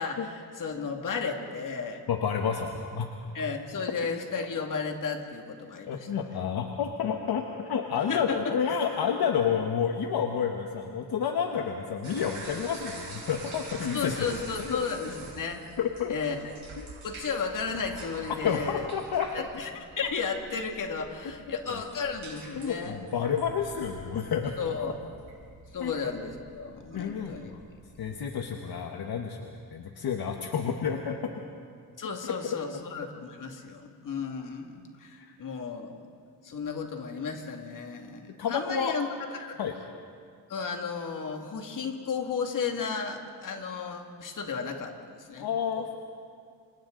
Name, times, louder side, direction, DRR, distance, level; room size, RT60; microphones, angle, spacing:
voice 1, 0.0-2.0 3.3-6.1 8.1-8.5 13.9-15.6 16.1-16.5 17.0-18.9 19.3-19.7 20.0-23.0 24.6-24.9 25.7-27.5 32.0-36.1 36.4-39.6 40.5-45.5 45.8-46.0, left 5 dB, 55° left, 3 dB, 2.2 m, -34 dB
voice 2, 2.1-3.1 5.9-14.1 14.6-14.8 15.8-16.1 18.4-19.5 21.5-21.8 22.6-24.6 25.8-25.9 26.9-27.6 28.0-31.2 35.2-35.4 38.4-39.0 39.6-39.8 45.4-45.9, left 7 dB, 70° left, 3 dB, 1.3 m, -30 dB
sound 1, 12.0-28.3, right 2 dB, 45° right, 5.7 m, -46 dB
29.5 x 26.5 x 3.9 m, 2.3 s
wide cardioid pair, 150°, 39 cm